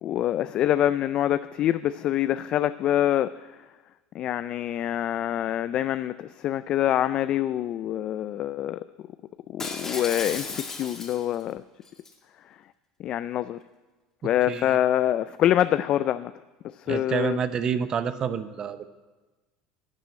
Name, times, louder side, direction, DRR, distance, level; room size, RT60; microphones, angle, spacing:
voice 1, 0.0-3.3 4.1-8.8 9.5-11.6 13.0-13.6 14.2-16.3 16.8-17.4, left 12 dB, 50° left, 14 dB, 0.3 m, -25 dB
Shatter, 9.6-11.4 11.8-12.1, left 3 dB, 20° left, 2.0 m, -35 dB
voice 2, 14.5-14.8 16.9-18.9, right 7 dB, 40° right, 12 dB, 0.7 m, -28 dB
12.0 x 7.2 x 8.5 m, 1.2 s
supercardioid pair, 100°, 2 cm